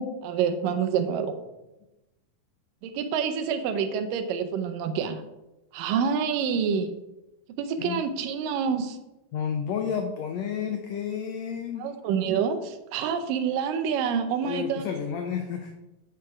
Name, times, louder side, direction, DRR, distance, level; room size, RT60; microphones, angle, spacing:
voice 1, 0.0-1.4 2.8-5.2 5.7-6.9 7.6-9.0 11.8-14.9, right 6 dB, 80° right, 9 dB, 2.3 m, -27 dB
voice 2, 9.3-11.9 14.4-15.7, left 7 dB, 85° left, 5 dB, 1.5 m, -31 dB
8.1 x 6.3 x 4.8 m, 0.98 s
omnidirectional pair, 4.0 m